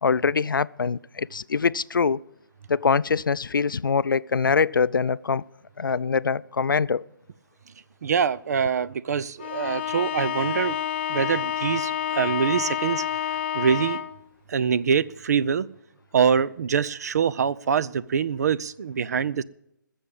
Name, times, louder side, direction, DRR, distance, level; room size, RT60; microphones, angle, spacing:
voice 1, 0.0-2.2 2.7-5.4 5.8-7.0, left 5 dB, 85° left, 0.4 m, -23 dB
voice 2, 8.0-10.8 11.1-13.0 13.5-14.0 14.5-15.7 16.1-19.4, right 7 dB, 50° right, 0.5 m, -24 dB
Bowed string instrument, 9.4-14.2, left 10 dB, 35° left, 0.6 m, -29 dB
20.0 x 7.2 x 5.4 m
figure-of-eight pair, 150°, 11 cm